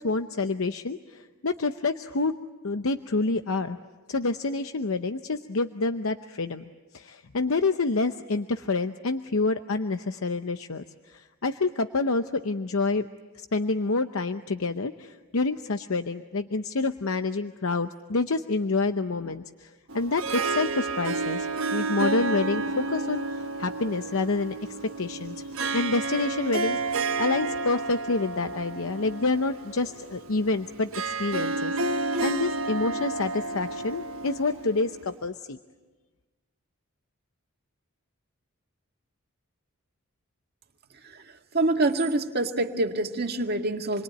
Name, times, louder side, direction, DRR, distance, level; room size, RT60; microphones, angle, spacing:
voice 1, 0.0-2.3 2.6-3.8 4.1-6.6 6.9-13.1 13.3-24.6 25.0-25.4 25.7-31.7 32.2-35.6, left 3 dB, 70° left, 8 dB, 0.8 m, -28 dB
Harp, 19.9-35.2, right 3 dB, 70° right, 1.3 m, -31 dB
voice 2, 41.5-44.0, right 2 dB, 45° right, 3 dB, 2.0 m, -26 dB
28.0 x 22.5 x 9.1 m, 1.3 s
head